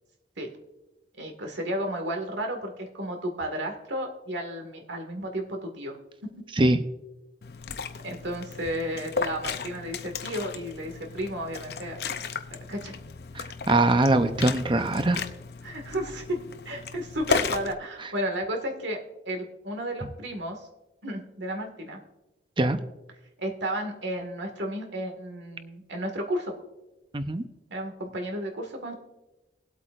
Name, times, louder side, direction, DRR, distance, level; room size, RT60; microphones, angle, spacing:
voice 1, 1.2-6.0 8.0-12.0 12.7-13.0 15.6-16.4 16.6-19.0 19.2-20.6 21.0-22.0 23.4-26.5 27.7-28.9, equal, 90° right, 3 dB, 1.8 m, -33 dB
Liquid, 7.4-17.7, left 5 dB, 60° left, 0.6 m, -34 dB
voice 2, 13.3-15.2 22.6-22.8 27.1-27.4, right 2 dB, 30° right, 10 dB, 0.6 m, -22 dB
20.5 x 8.2 x 2.5 m, 1.0 s
head